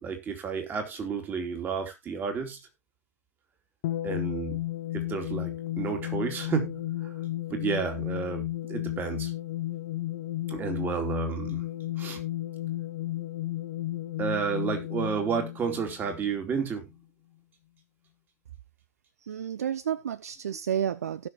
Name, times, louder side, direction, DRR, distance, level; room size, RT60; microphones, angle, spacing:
voice 1, 0.0-2.6 4.0-4.6 4.9-7.1 7.5-9.3 10.5-11.7 12.0-12.2 14.2-16.9, right 6 dB, 20° right, 2.8 m, -31 dB
sound 1, 3.8-16.7, left 15 dB, 45° left, 1.1 m, -33 dB
voice 2, 19.2-21.3, right 9 dB, 65° right, 0.6 m, -31 dB
17.5 x 6.2 x 2.9 m
figure-of-eight pair, 100°, 9 cm